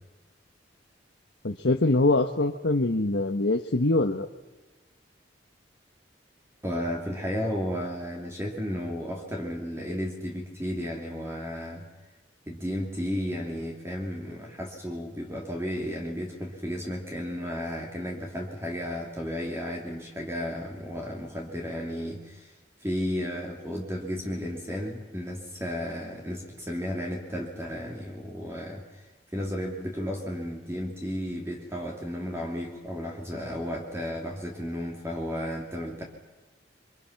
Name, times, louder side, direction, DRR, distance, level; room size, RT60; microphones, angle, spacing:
voice 1, 1.4-4.3, left 2 dB, 70° left, 4 dB, 1.1 m, -24 dB
voice 2, 6.6-11.8 12.5-22.5 22.8-29.1 29.3-36.0, equal, 15° right, -1 dB, 2.8 m, -33 dB
28.5 x 24.5 x 5.9 m, 1.2 s
head